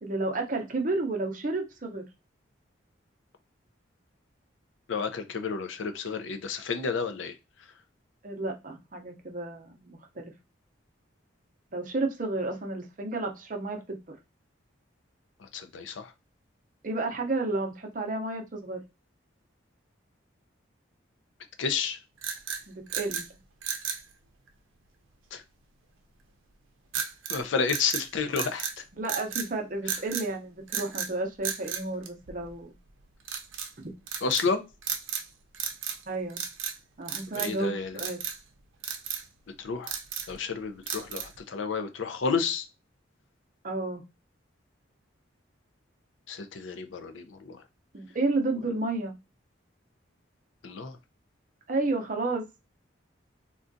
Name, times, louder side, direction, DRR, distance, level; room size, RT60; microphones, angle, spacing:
voice 1, 0.0-2.0 8.2-10.3 11.7-14.0 16.8-18.8 22.7-23.3 28.9-32.7 36.1-36.4 37.0-38.2 43.6-44.0 47.9-49.2 51.7-52.4, right 2 dB, 40° right, 3 dB, 0.6 m, -31 dB
voice 2, 4.9-7.3 15.5-16.1 21.6-22.0 25.3-25.4 27.3-28.8 34.2-34.6 37.3-38.0 39.6-39.9 40.3-42.6 46.3-47.6 50.6-51.0, left 5 dB, 70° left, 9 dB, 0.4 m, -31 dB
sound 1, 22.2-23.3 23.6-24.0 26.9-27.4 27.7-28.8 29.0-29.5 29.9-30.3 30.7-31.1 31.4-32.6 33.2-33.7 34.1-34.5 34.8-35.3 35.5-36.0 36.3-36.8 37.1-37.6 38.0-38.4 38.8-39.2 39.7-40.4 40.9-41.4, right 8 dB, 85° right, 0.5 m, -34 dB
3.7 x 2.2 x 2.5 m, 0.26 s
head